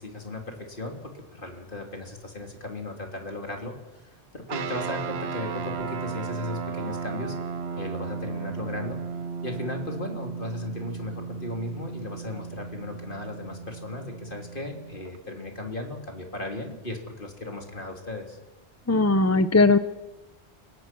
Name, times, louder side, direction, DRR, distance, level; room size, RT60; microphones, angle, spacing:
voice 1, 0.0-4.0 4.3-7.3 7.8-9.0 9.4-18.4, left 2 dB, 50° left, 2 dB, 3.5 m, -36 dB
sound 1, 4.5-15.2, right 6 dB, 65° right, 1.1 m, -35 dB
voice 2, 18.9-19.8, left 3 dB, 15° left, 12 dB, 0.6 m, -19 dB
29.5 x 17.0 x 6.1 m, 1.1 s
omnidirectional pair, 1.2 m